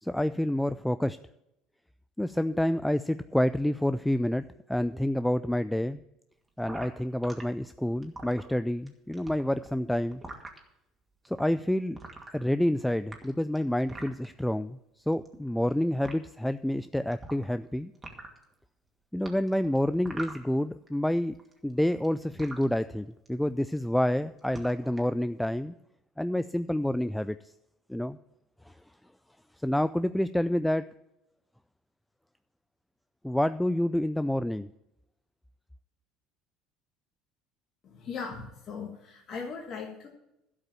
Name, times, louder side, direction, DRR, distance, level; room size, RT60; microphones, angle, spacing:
voice 1, 0.0-1.2 2.2-6.0 6.6-10.2 11.3-12.0 12.3-14.8 15.1-17.9 19.1-21.4 21.6-25.7 26.2-27.5 27.9-28.2 28.7-28.8 29.6-30.8 33.2-34.7, left 1 dB, 5° left, 13 dB, 0.3 m, -28 dB
sound 1, 6.6-7.4 7.9-8.9 9.1-10.6 11.2-11.4 12.0-12.7 13.0-14.3 15.1-15.7 16.0-16.1 17.1-17.6 17.9-18.4 19.2-20.9 21.1-22.6 23.3-23.5 23.8-24.1 24.4-25.1, right 2 dB, 15° right, 2.3 m, -43 dB
voice 2, 37.8-40.1, left 5 dB, 45° left, 1 dB, 1.7 m, -39 dB
12.0 x 5.3 x 8.7 m, 0.86 s
hypercardioid pair, 75°, 0 cm